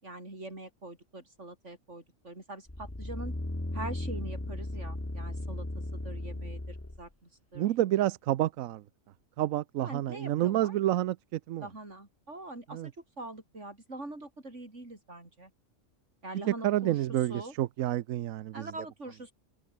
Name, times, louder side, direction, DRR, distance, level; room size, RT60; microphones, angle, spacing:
voice 1, 0.0-3.3 3.7-5.7 5.9-7.7 9.8-10.7 11.6-15.5 16.2-17.0 17.3-17.5 18.5-19.3, right 2 dB, 60° right, 5.9 m, -44 dB
sound 1, 2.7-7.1 7.5-7.6, left 1 dB, 10° left, 1.4 m, -36 dB
voice 2, 7.5-8.8 9.4-11.7 12.7-12.9 16.5-18.7, right 13 dB, 85° right, 1.0 m, -29 dB
open air
omnidirectional pair, 1.4 m